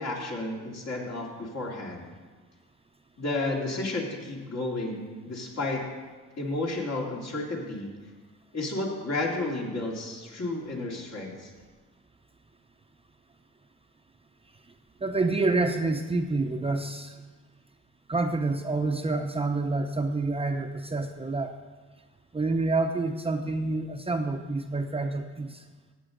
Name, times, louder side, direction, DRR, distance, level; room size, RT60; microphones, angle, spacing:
voice 1, 0.0-2.1 3.2-5.8 6.4-7.9 8.5-11.5, left 2 dB, 60° left, -2 dB, 2.6 m, -32 dB
voice 2, 15.0-17.2 18.1-21.5 22.3-25.6, right 3 dB, 20° right, 5 dB, 0.6 m, -28 dB
14.0 x 8.1 x 3.8 m, 1.4 s
cardioid pair, 90°, 30 cm